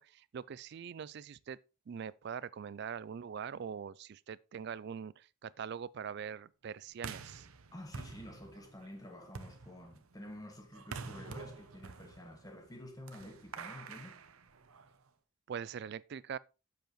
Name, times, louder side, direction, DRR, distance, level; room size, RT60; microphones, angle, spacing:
voice 1, 0.0-1.6 1.9-7.5 15.5-16.4, right 7 dB, 50° right, 0.3 m, -43 dB
sound 1, 6.9-15.1, right 5 dB, 80° right, 0.7 m, -48 dB
voice 2, 7.7-14.2, left 1 dB, 15° left, 1.3 m, -50 dB
7.8 x 6.8 x 3.1 m
head